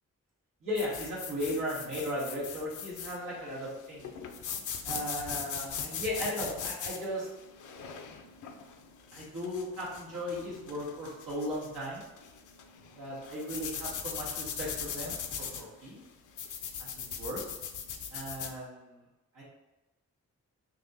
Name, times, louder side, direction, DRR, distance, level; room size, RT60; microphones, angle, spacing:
voice 1, 0.6-4.1 4.8-7.3 9.1-12.0 13.0-16.0 16.8-17.4 18.1-19.0 19.3-19.4, equal, 90° right, -6 dB, 1.3 m, -36 dB
sound 1, 0.8-18.6, left 7 dB, 70° left, 0.5 m, -40 dB
4.0 x 2.6 x 2.7 m, 1.0 s
cardioid pair, 45°, 32 cm